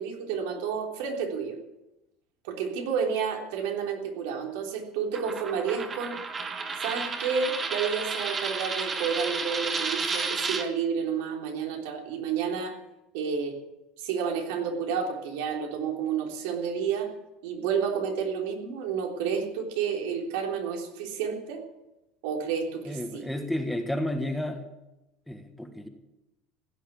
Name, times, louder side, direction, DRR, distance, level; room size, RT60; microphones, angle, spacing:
voice 1, 0.0-1.6 2.4-6.2 6.8-12.8 13.1-13.6 14.0-17.1 17.4-21.6 22.2-23.2, right 6 dB, 85° right, 2 dB, 3.4 m, -30 dB
Coin (dropping), 5.1-10.6, right 4 dB, 20° right, 1.5 m, -32 dB
voice 2, 22.8-24.7 25.3-25.9, left 1 dB, 5° left, 5 dB, 1.5 m, -31 dB
16.0 x 9.8 x 8.4 m, 0.95 s
cardioid pair, 160°, 0 cm